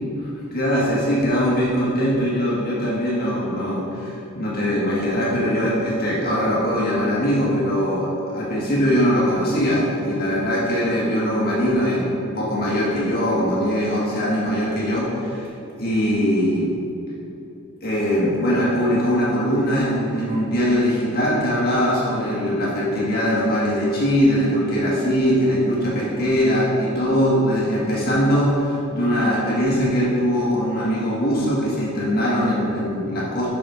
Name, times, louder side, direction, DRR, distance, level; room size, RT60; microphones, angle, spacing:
voice 1, 0.5-15.5 15.8-16.7 17.8-33.5, equal, 45° left, -6 dB, 1.7 m, -21 dB
7.5 x 5.9 x 4.9 m, 2.8 s
head